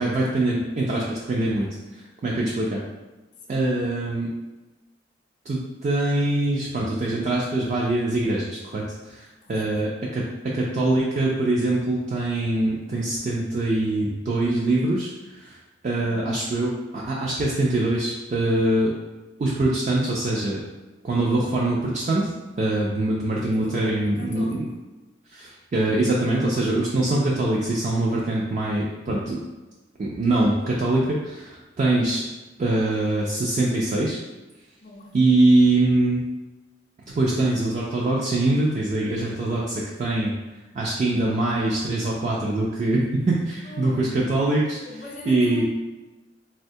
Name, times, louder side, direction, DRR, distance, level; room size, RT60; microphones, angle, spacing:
voice 1, 0.0-1.7 2.2-2.8 3.5-4.3 5.5-15.6 15.8-18.9 19.4-20.6 21.0-22.3 22.6-24.7 25.3-29.4 30.0-32.2 32.6-34.2 35.1-36.2 37.2-40.3 40.7-44.8 45.3-45.6, right 2 dB, 40° right, -4 dB, 0.3 m, -23 dB
voice 2, 9.4-9.7 16.0-16.2 23.5-24.7 34.8-35.2 43.6-44.4 44.8-45.6, left 3 dB, 45° left, -3 dB, 0.5 m, -40 dB
3.4 x 2.2 x 2.6 m, 1.1 s
head